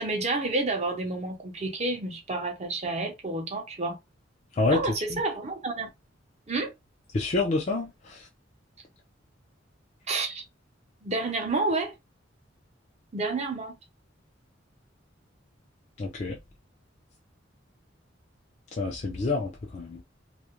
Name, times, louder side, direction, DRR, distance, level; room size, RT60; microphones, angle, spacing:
voice 1, 0.0-4.0 4.7-5.9 6.5-6.7 10.1-10.4 11.0-12.0 13.1-13.7, right 3 dB, 35° right, 0.6 m, -29 dB
voice 2, 7.1-8.2 16.0-16.4 18.8-20.0, left 3 dB, 35° left, 0.5 m, -27 dB
2.4 x 2.1 x 2.8 m
head